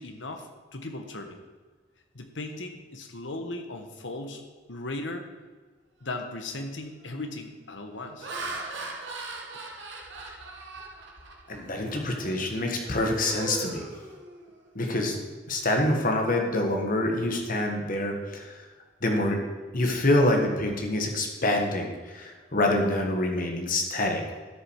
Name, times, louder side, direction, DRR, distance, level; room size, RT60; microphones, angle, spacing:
voice 1, 0.0-1.4 2.1-4.4 4.7-5.3 6.0-8.3 9.5-9.6, left 2 dB, 80° left, 5 dB, 1.4 m, -37 dB
Laughter, 6.3-6.4 7.0-7.3 7.9-11.7 12.1-12.4 12.8-14.7, right 3 dB, 75° right, 1.6 m, -39 dB
voice 2, 11.5-13.9 14.8-15.2 15.5-18.6 19.0-19.4 19.7-24.2, left 1 dB, 50° left, 2 dB, 1.8 m, -26 dB
12.5 x 6.9 x 4.8 m, 1.4 s
head